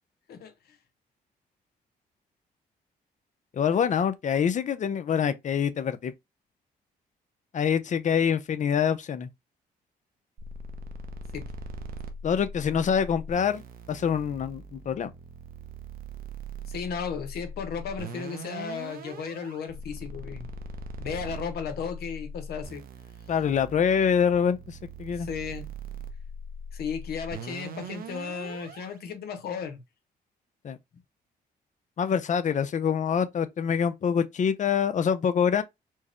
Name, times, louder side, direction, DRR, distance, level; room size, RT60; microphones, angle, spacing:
voice 1, 3.5-6.1 7.5-9.3 12.2-13.6 13.9-15.1 23.3-25.3 30.6-30.8 32.0-35.6, left 7 dB, 50° left, 0.6 m, -25 dB
sound 1, 10.4-29.0, right 1 dB, 65° right, 0.7 m, -41 dB
voice 2, 16.7-20.5 21.0-22.8 25.1-25.7 26.7-29.8, left 6 dB, 80° left, 0.8 m, -35 dB
4.5 x 2.1 x 3.0 m
cardioid pair, 80°, 16 cm